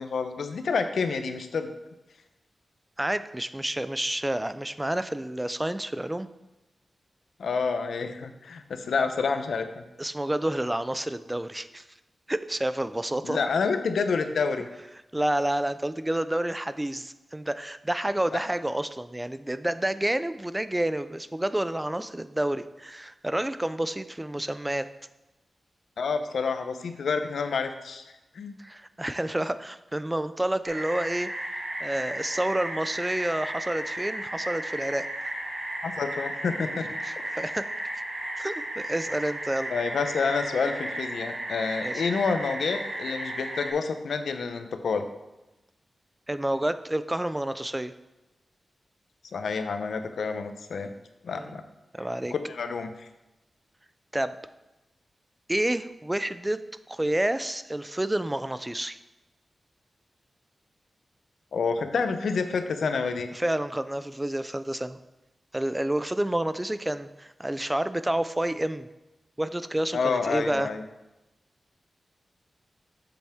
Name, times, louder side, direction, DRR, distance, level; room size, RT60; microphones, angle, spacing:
voice 1, 0.0-1.7 7.4-9.8 13.2-14.7 18.3-18.4 26.0-28.0 28.3-28.5 35.8-36.9 37.2-37.3 39.7-45.1 49.3-50.9 51.2-51.6 52.5-53.1 61.5-63.3 69.9-70.8, left 5 dB, 90° left, 8 dB, 0.6 m, -28 dB
voice 2, 3.0-6.3 10.0-11.8 12.3-13.4 15.1-24.9 28.6-31.3 31.8-35.1 37.0-37.7 38.4-39.7 41.8-42.0 46.3-47.9 51.4-51.6 51.9-52.3 54.1-54.4 55.5-56.6 56.9-59.0 63.3-65.0 65.5-68.9 69.4-70.7, right 1 dB, 15° right, 13 dB, 0.4 m, -29 dB
sound 1, 30.6-43.7, right 1 dB, 55° right, 1.6 m, -34 dB
7.5 x 7.1 x 3.5 m, 0.98 s
wide cardioid pair, 100°, 0 cm